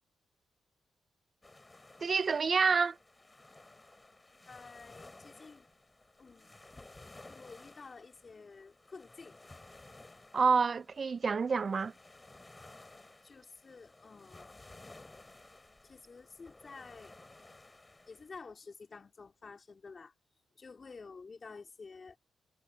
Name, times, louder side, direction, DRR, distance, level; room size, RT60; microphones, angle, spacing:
sound 1, 1.4-18.4, left 2 dB, 20° left, 5.2 m, -56 dB
voice 1, 2.0-3.0 10.3-11.9, right 5 dB, 50° right, 0.4 m, -28 dB
voice 2, 4.5-5.7 6.2-6.6 7.3-9.4 13.2-14.6 15.8-17.1 18.1-20.1 20.5-22.2, left 4 dB, 45° left, 3.3 m, -51 dB
supercardioid pair, 60°, 0 cm